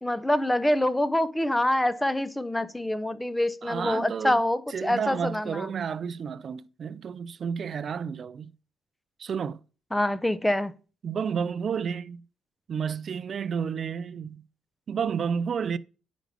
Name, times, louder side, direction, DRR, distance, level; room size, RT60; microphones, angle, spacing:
voice 1, 0.0-5.7 9.9-10.7, left 1 dB, 10° left, 0.7 m, -26 dB
voice 2, 3.6-4.4 4.7-8.5 9.2-9.6 11.0-12.2 12.7-14.4 14.9-15.8, right 7 dB, 50° right, 0.5 m, -31 dB
10.0 x 5.1 x 5.0 m
cardioid pair, 90°, 0 cm